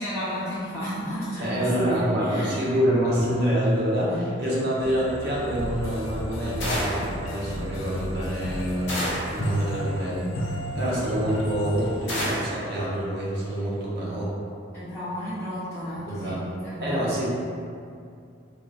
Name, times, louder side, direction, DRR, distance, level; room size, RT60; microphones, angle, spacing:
voice 1, 0.0-2.5 4.0-4.2 4.7-4.8 10.9-11.0 14.7-17.1, equal, 10° left, -17 dB, 0.8 m, -32 dB
voice 2, 1.4-10.3 10.7-14.3 16.1-16.4 16.8-17.2, equal, 55° right, -6 dB, 0.7 m, -26 dB
sound 1, 4.8-12.3, equal, 85° left, 0.4 m, -33 dB
sound 2, 6.6-7.1 8.9-9.4 12.1-12.6, equal, 60° left, 0.8 m, -29 dB
3.8 x 2.0 x 2.5 m, 2.4 s
head